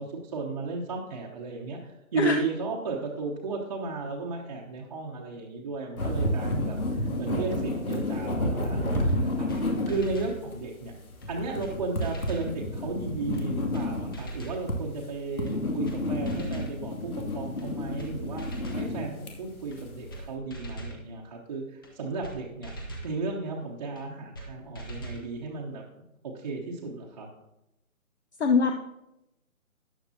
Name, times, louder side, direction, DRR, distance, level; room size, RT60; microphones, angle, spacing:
voice 1, 0.0-10.9 11.3-18.4 18.8-22.7 23.0-25.8 26.2-27.3, right 4 dB, 25° right, -3 dB, 1.0 m, -34 dB
sound 1, 6.0-20.2, left 1 dB, 80° left, 2.6 m, -31 dB
sound 2, 9.1-9.2 9.5-9.6 9.9-10.4 11.2-11.3 11.6-11.7 12.0-12.5 13.3-13.4 13.7-13.9 14.1-14.6 15.5-15.6 15.8-16.0 16.3-16.7 17.6-17.7 18.0-18.1 18.4-18.9 19.7-19.8 20.1-20.2 20.5-21.0 21.8-21.9 22.2-22.4 22.6-23.1 24.0-24.1 24.3-24.5 24.7-25.2, right 2 dB, 15° left, 0.8 m, -40 dB
voice 2, 28.4-28.8, left 5 dB, 50° left, 5 dB, 0.9 m, -22 dB
13.5 x 10.0 x 2.8 m, 0.91 s
figure-of-eight pair, 150°, 42 cm